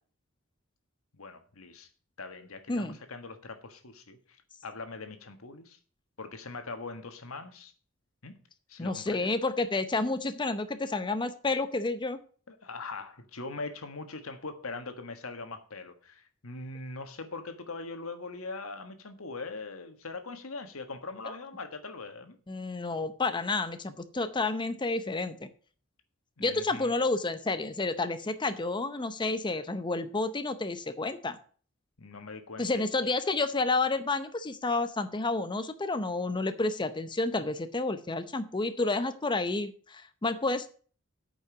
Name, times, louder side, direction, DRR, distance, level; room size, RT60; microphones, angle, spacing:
voice 1, 1.1-1.9 2.2-4.2 4.6-5.8 6.2-7.7 8.2-8.4 8.7-9.3 12.5-22.4 26.4-26.9 32.0-32.9, left 3 dB, 85° left, 8 dB, 1.5 m, -41 dB
voice 2, 8.8-12.2 21.3-21.4 22.5-25.5 26.4-31.4 32.6-40.7, left 3 dB, 20° left, 10 dB, 0.6 m, -30 dB
9.0 x 5.5 x 7.8 m, 0.42 s
head